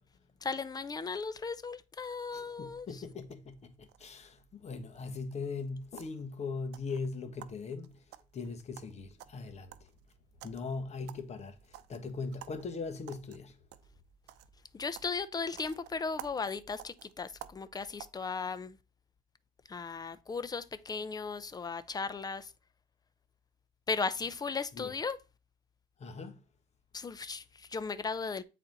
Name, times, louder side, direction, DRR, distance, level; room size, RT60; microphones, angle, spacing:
voice 1, 0.4-3.0 14.7-18.8 19.7-22.5 23.9-25.2 26.9-28.4, left 4 dB, 25° left, 0.6 m, -36 dB
voice 2, 2.3-8.0 8.3-9.7 10.4-13.6 24.7-24.9 26.0-26.4, left 4 dB, 40° left, 1.3 m, -40 dB
sound 1, 2.6-18.1, right 12 dB, 85° right, 0.6 m, -54 dB
8.7 x 4.2 x 4.0 m
cardioid pair, 110°, 17 cm